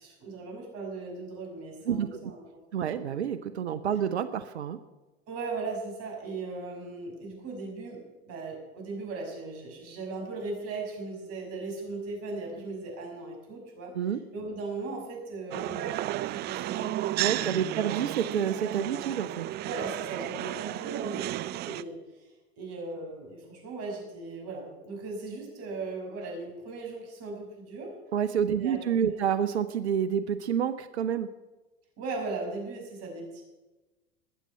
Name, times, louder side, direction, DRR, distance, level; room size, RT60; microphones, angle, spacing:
voice 1, 0.0-2.4 2.9-3.0 5.3-8.0 8.3-13.9 14.3-17.4 17.6-17.8 19.6-27.9 28.5-29.3 32.0-33.4, right 3 dB, 45° right, 1 dB, 6.3 m, -38 dB
voice 2, 2.7-4.8 13.9-14.2 17.2-19.5 28.1-31.3, right 8 dB, 85° right, 12 dB, 0.8 m, -28 dB
sound 1, 15.5-21.8, right 15 dB, 30° right, 0.4 m, -33 dB
21.0 x 7.5 x 5.6 m, 1.1 s
hypercardioid pair, 95°, 33 cm